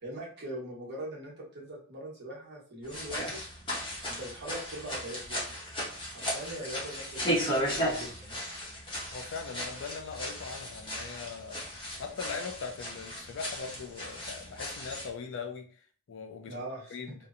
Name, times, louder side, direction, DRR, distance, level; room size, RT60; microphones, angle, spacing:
voice 1, 0.0-3.4 4.1-8.4 16.5-17.0, right 1 dB, 50° right, -3 dB, 1.1 m, -42 dB
sound 1, 2.8-15.1, equal, 20° left, 0.8 m, -36 dB
voice 2, 9.1-15.8 16.1-16.5 16.9-17.1, left 5 dB, 60° left, 5 dB, 0.4 m, -40 dB
2.8 x 2.1 x 2.4 m, 0.43 s
head